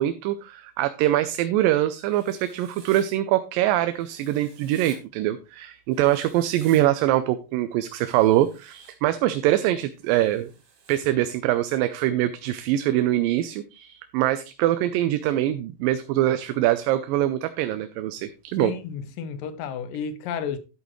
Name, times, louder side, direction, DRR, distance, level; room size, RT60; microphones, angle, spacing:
voice 1, 0.0-10.5 10.9-18.7, right 13 dB, 85° right, 2.3 m, -23 dB
Writing, 2.0-3.1 4.0-5.0 5.9-6.8 7.9-8.9 10.0-11.0, right 5 dB, 60° right, 3.1 m, -51 dB
voice 2, 18.6-20.6, left 7 dB, 80° left, 2.6 m, -32 dB
11.0 x 8.1 x 3.1 m
omnidirectional pair, 3.9 m